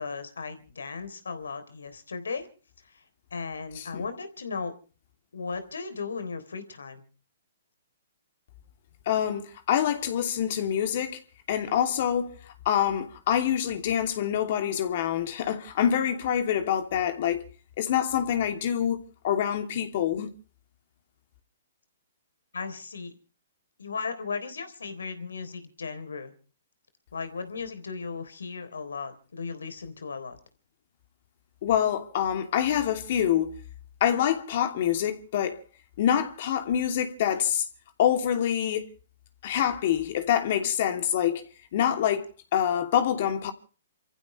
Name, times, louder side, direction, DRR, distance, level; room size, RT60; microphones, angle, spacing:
voice 1, 0.0-2.5 2.9-3.0 3.3-4.7 5.3-7.0 22.5-23.1 23.8-26.3 27.1-30.4, left 5 dB, 80° left, 3.6 m, -36 dB
voice 2, 3.8-4.1 9.1-11.2 11.5-12.4 12.6-17.4 17.8-20.3 31.6-33.5 34.0-35.6 36.0-37.7 38.0-38.9 39.4-41.4 41.7-43.5, left 9 dB, 50° left, 2.8 m, -26 dB
29.0 x 15.0 x 3.3 m
hypercardioid pair, 130°, 0 cm